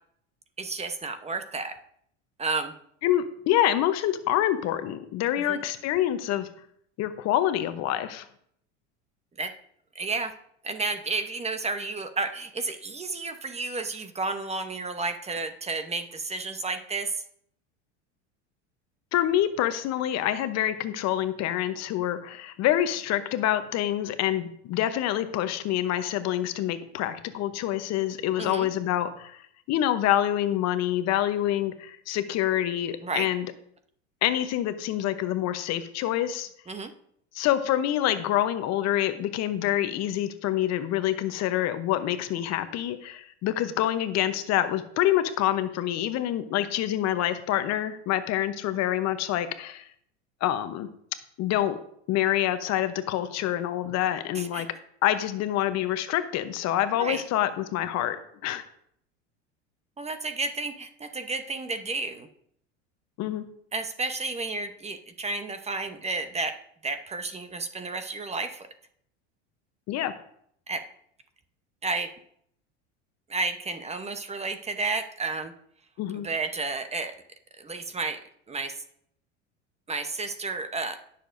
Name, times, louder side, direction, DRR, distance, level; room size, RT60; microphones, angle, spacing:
voice 1, 0.6-1.8 2.4-2.7 5.5-5.6 9.4-9.5 9.9-10.3 10.6-17.2 28.4-28.7 33.0-33.3 36.7-36.9 54.3-54.7 57.0-57.2 60.0-62.3 63.7-66.6 66.8-68.6 70.7-70.8 71.8-72.1 73.3-75.5 76.2-77.1 77.6-78.2 78.5-78.7 79.9-81.0, right 3 dB, 20° right, 8 dB, 0.9 m, -31 dB
voice 2, 3.0-6.5 7.0-8.3 19.1-33.5 34.2-36.5 37.3-49.9 50.4-50.9 51.4-51.8 52.1-54.7 55.0-58.2 58.4-58.6 63.2-63.4 69.9-70.1 76.0-76.3, left 12 dB, 50° left, 11 dB, 0.9 m, -26 dB
17.5 x 6.8 x 2.6 m, 0.68 s
hypercardioid pair, 100°, 35 cm